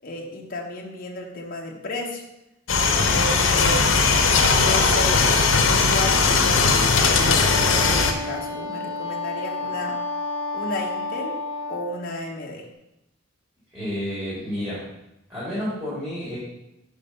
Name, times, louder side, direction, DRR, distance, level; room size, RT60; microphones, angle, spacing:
voice 1, 0.0-2.2 2.8-3.9 4.4-5.6 5.9-10.0 10.5-11.4 11.7-12.7, left 2 dB, 45° left, -1 dB, 1.0 m, -33 dB
sound 1, 2.7-8.1, left 4 dB, 85° left, 0.8 m, -19 dB
Wind instrument woodwind instrument, 7.4-12.0, left 3 dB, 70° right, 1.2 m, -30 dB
voice 2, 13.7-14.9 15.3-16.4, equal, 15° right, -10 dB, 2.8 m, -30 dB
5.3 x 5.1 x 5.5 m, 0.88 s
head